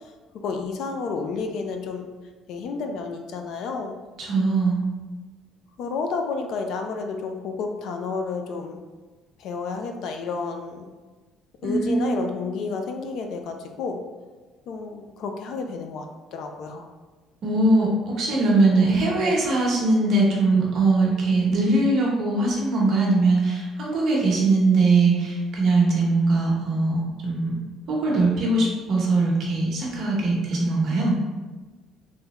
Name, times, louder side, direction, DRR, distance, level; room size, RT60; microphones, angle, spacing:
voice 1, 0.4-2.1 2.5-3.9 5.8-8.8 9.4-10.9 11.6-14.0 14.7-16.0 16.3-16.9, left 4 dB, 60° left, 4 dB, 0.4 m, -30 dB
voice 2, 4.2-4.8 11.6-12.2 17.4-27.5 27.9-31.1, right 2 dB, 40° right, -3 dB, 0.9 m, -21 dB
3.6 x 3.1 x 2.9 m, 1.3 s
cardioid pair, 170°, 0 cm